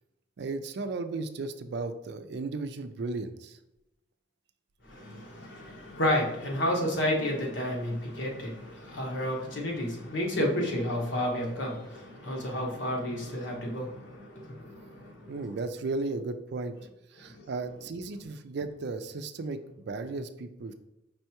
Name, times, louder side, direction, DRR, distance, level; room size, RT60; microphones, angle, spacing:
voice 1, 0.4-3.6 15.3-16.7 17.1-20.7, right 3 dB, 65° right, 9 dB, 0.4 m, -35 dB
voice 2, 4.9-15.4 17.3-17.4, left 1 dB, 80° left, -1 dB, 1.3 m, -31 dB
5.4 x 3.3 x 2.9 m, 0.91 s
head